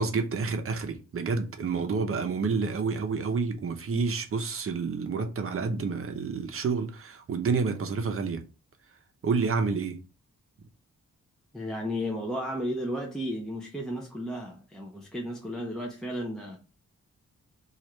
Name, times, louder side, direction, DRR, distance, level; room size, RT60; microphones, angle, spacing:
voice 1, 0.0-8.4 9.2-10.0, right 4 dB, 45° right, 0.6 m, -29 dB
voice 2, 11.5-16.6, equal, ahead, 0.4 m, -33 dB
3.0 x 2.4 x 4.3 m
wide cardioid pair, 140°, 30 cm